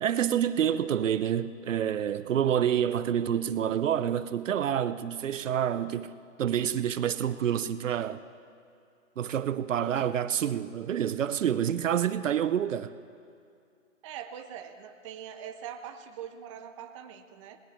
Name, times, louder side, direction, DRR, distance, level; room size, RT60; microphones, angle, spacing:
voice 1, 0.0-6.1 6.4-8.2 9.2-12.9, right 9 dB, 65° right, 0.7 m, -28 dB
voice 2, 14.0-17.6, right 9 dB, 25° right, 0.6 m, -42 dB
20.0 x 18.0 x 3.2 m
hypercardioid pair, 140°, 40 cm